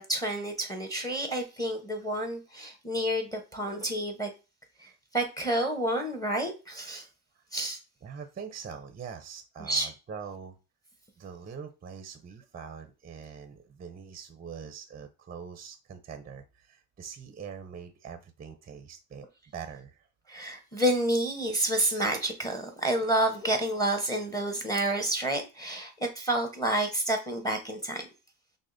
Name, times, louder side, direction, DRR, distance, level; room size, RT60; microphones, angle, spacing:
voice 1, 0.0-4.3 4.8-7.0 7.5-7.8 9.6-9.9 20.3-28.1, right 1 dB, 10° left, 5 dB, 0.8 m, -29 dB
voice 2, 8.0-10.6 11.2-19.3 19.5-20.1, right 6 dB, 25° right, 8 dB, 0.5 m, -43 dB
6.1 x 2.1 x 2.5 m, 0.30 s
supercardioid pair, 90°, 40 cm